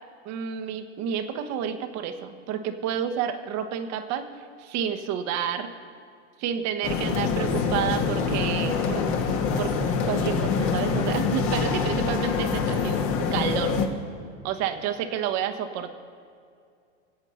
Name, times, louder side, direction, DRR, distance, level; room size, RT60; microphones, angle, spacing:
voice 1, 0.2-4.2 4.6-5.7 6.4-9.0 9.6-9.7 10.1-13.0 13.3-13.8 14.4-15.9, right 8 dB, 45° right, 7 dB, 1.3 m, -30 dB
sound 1, 6.8-13.9, left 5 dB, 35° left, 1.6 m, -25 dB
19.5 x 8.1 x 5.7 m, 2.3 s
supercardioid pair, 125°, 39 cm